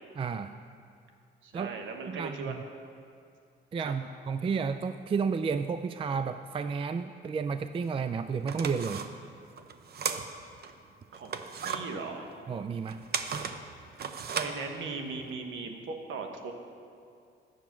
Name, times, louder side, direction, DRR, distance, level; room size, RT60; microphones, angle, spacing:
voice 1, 0.2-0.5 1.5-1.7 2.1-2.6 3.7-9.0 12.5-13.0, right 5 dB, 30° right, 10 dB, 0.3 m, -32 dB
voice 2, 1.4-2.6 3.8-3.9 11.1-12.3 14.4-16.5, right 4 dB, 75° right, 4 dB, 1.2 m, -38 dB
sound 1, 7.8-7.9 8.4-10.7 11.1-15.3, right 6 dB, 50° right, 0.7 m, -36 dB
10.5 x 8.7 x 5.9 m, 2.4 s
cardioid pair, 90°, 20 cm